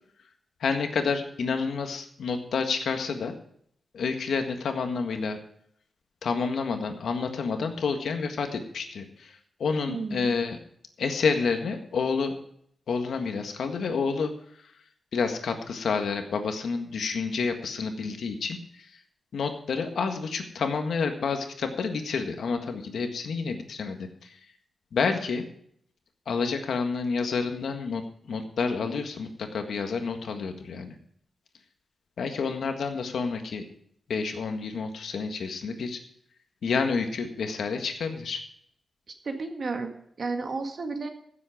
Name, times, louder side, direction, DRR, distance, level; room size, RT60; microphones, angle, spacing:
voice 1, 0.6-3.3 3.9-5.4 6.2-9.3 9.6-10.6 11.0-12.3 12.9-14.3 15.1-18.6 19.3-24.3 24.9-25.4 26.3-28.0 28.3-30.9 32.2-33.6 34.1-36.0 36.6-38.4, left 5 dB, 85° left, 6 dB, 1.6 m, -29 dB
voice 2, 9.9-10.3 28.6-29.0 39.1-41.1, right 3 dB, 50° right, 5 dB, 1.7 m, -33 dB
15.5 x 7.8 x 5.0 m, 0.67 s
wide cardioid pair, 120°, 0 cm